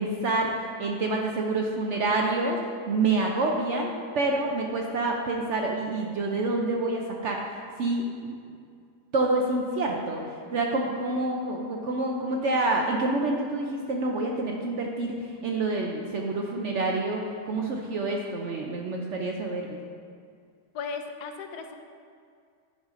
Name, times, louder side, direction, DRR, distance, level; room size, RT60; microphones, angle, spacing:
voice 1, 0.0-2.6 2.9-7.4 7.8-8.3 9.1-19.8, right 2 dB, 65° right, 0 dB, 0.7 m, -27 dB
voice 2, 20.7-21.8, left 5 dB, 75° left, 6 dB, 1.2 m, -36 dB
10.5 x 4.8 x 3.7 m, 2.2 s
omnidirectional pair, 1.8 m